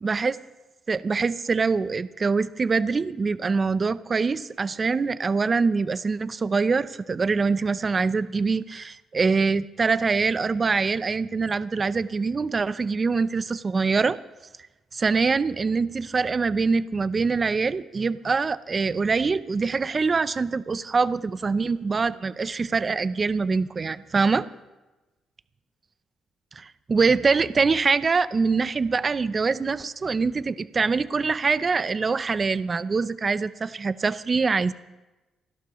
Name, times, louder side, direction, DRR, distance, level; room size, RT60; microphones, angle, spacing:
voice 1, 0.0-0.4 0.9-14.2 14.9-24.5 26.6-34.7, right 4 dB, 35° right, 14 dB, 0.6 m, -24 dB
29.0 x 11.5 x 3.1 m, 1.1 s
cardioid pair, 90°, 0 cm